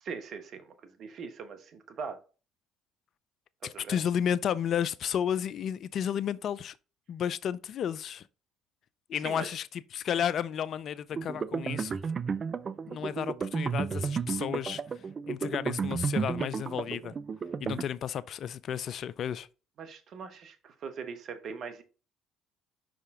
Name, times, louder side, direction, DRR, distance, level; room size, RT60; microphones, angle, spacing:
voice 1, 0.0-2.2 3.6-4.0 9.2-9.5 19.8-21.8, right 5 dB, 55° right, 1.1 m, -41 dB
voice 2, 3.6-6.8 7.1-8.3 9.1-12.0 12.9-14.8 15.3-17.1 17.6-19.5, left 9 dB, 55° left, 0.4 m, -32 dB
sound 1, 11.1-17.8, right 6 dB, 40° right, 0.4 m, -33 dB
5.5 x 5.0 x 3.7 m
hypercardioid pair, 60°, 0 cm